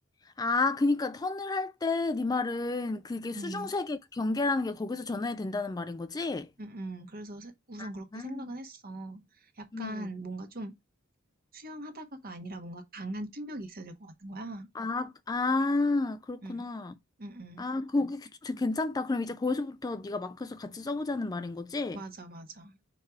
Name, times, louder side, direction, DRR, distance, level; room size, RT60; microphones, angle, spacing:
voice 1, 0.4-6.5 7.8-8.5 9.7-10.1 14.8-16.9 17.6-22.0, left 3 dB, 20° left, 0.3 m, -31 dB
voice 2, 3.3-3.7 6.6-10.8 11.5-14.7 16.4-16.7 17.2-17.7 21.9-22.7, right 1 dB, 45° right, 1.3 m, -41 dB
4.9 x 4.6 x 4.6 m
head